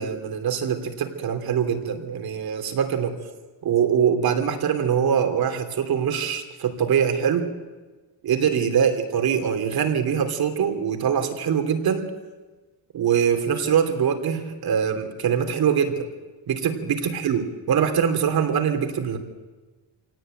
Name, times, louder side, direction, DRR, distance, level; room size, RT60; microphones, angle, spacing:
voice 1, 0.0-3.1 3.6-7.5 8.2-12.1 12.9-16.0 16.5-19.2, right 7 dB, 50° right, 6 dB, 3.1 m, -23 dB
25.0 x 18.0 x 9.1 m, 1.3 s
cardioid pair, 150°, 46 cm